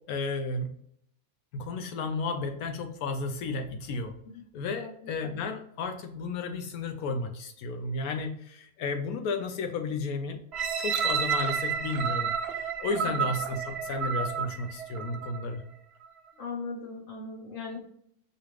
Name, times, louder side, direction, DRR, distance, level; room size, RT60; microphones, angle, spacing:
voice 1, 0.1-0.7 1.5-4.2 4.5-10.4 10.8-15.6, left 3 dB, 85° left, 5 dB, 1.1 m, -33 dB
voice 2, 4.8-5.1 12.9-13.2 16.4-17.8, left 3 dB, 40° left, -2 dB, 1.3 m, -39 dB
sound 1, 10.5-15.5 16.0-16.1, right 6 dB, 60° right, 0.8 m, -30 dB
6.5 x 2.4 x 3.2 m, 0.68 s
omnidirectional pair, 1.5 m